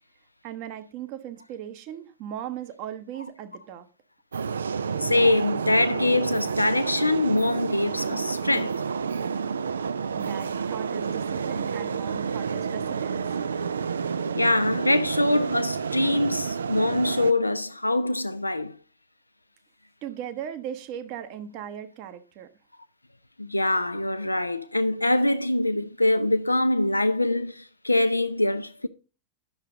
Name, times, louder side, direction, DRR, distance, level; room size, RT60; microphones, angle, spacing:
voice 1, 0.4-3.9 10.1-13.3 20.0-22.5, right 10 dB, 45° right, 1.0 m, -38 dB
sound 1, 4.3-17.3, right 6 dB, 70° right, 0.4 m, -29 dB
voice 2, 5.0-8.8 14.3-18.8 23.4-28.9, left 2 dB, 85° left, 0.3 m, -24 dB
10.5 x 6.7 x 3.7 m
figure-of-eight pair, 90°, 0 cm